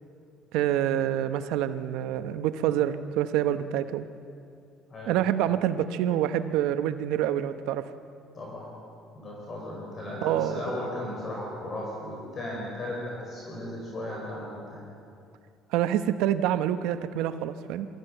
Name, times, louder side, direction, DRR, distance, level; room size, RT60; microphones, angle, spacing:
voice 1, 0.5-4.0 5.1-7.9 10.2-10.6 15.7-17.9, right 11 dB, 85° right, 10 dB, 0.9 m, -27 dB
voice 2, 8.3-8.7 9.1-14.9, left 1 dB, 35° left, -3 dB, 4.8 m, -36 dB
23.0 x 14.5 x 9.0 m, 2.4 s
cardioid pair, 135°, 0 cm